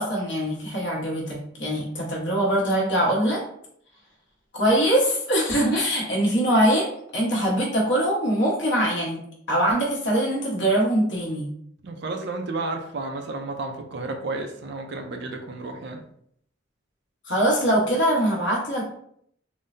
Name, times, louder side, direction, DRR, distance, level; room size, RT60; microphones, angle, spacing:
voice 1, 0.0-3.4 4.5-9.2 9.5-11.5 17.3-19.0, right 1 dB, 60° left, -4 dB, 1.0 m, -23 dB
voice 2, 11.8-16.0, right 3 dB, 55° right, 4 dB, 0.4 m, -32 dB
3.8 x 2.1 x 2.5 m, 0.68 s
head